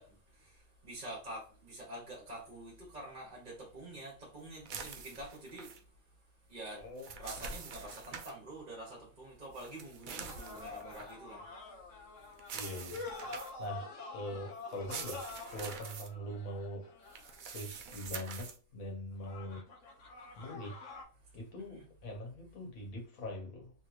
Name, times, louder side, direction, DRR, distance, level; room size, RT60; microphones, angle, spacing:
voice 1, 0.0-5.7 6.5-11.4 21.7-21.9, right 1 dB, 40° right, 1.1 m, -47 dB
sound 1, 4.7-5.8 6.8-8.3 9.5-11.1 12.4-13.7 14.7-16.1 17.1-18.6, right 5 dB, 75° right, 0.4 m, -45 dB
voice 2, 6.7-7.1 12.5-13.0 13.6-16.9 17.5-19.6 20.4-20.9 21.3-23.7, equal, 90° left, 1.4 m, -43 dB
sound 2, 10.3-17.6 19.2-21.0, left 3 dB, 70° left, 1.1 m, -47 dB
3.1 x 2.9 x 2.4 m
omnidirectional pair, 1.4 m